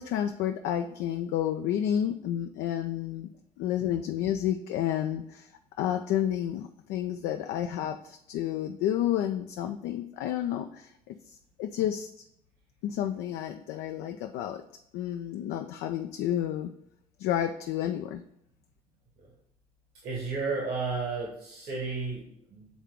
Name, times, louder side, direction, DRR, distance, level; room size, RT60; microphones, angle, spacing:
voice 1, 0.0-3.3 3.6-5.5 5.8-12.1 12.8-14.6 14.9-16.7 17.2-18.2, left 11 dB, 65° left, 6 dB, 0.4 m, -30 dB
voice 2, 20.0-22.7, right 4 dB, 55° right, -1 dB, 1.4 m, -33 dB
7.3 x 3.6 x 3.5 m, 0.76 s
hypercardioid pair, 50°, 19 cm